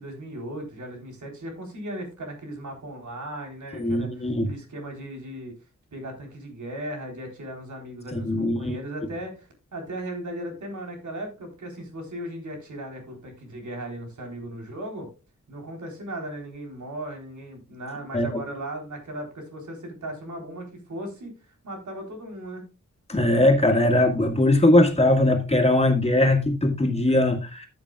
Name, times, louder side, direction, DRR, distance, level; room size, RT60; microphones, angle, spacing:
voice 1, 0.0-5.6 5.9-15.1 15.5-22.6, right 1 dB, 85° right, 4.0 m, -37 dB
voice 2, 3.8-4.5 8.1-8.8 18.1-18.3 23.1-27.7, left 1 dB, 20° left, 2.0 m, -20 dB
14.5 x 7.5 x 2.4 m
wide cardioid pair, 155°, 29 cm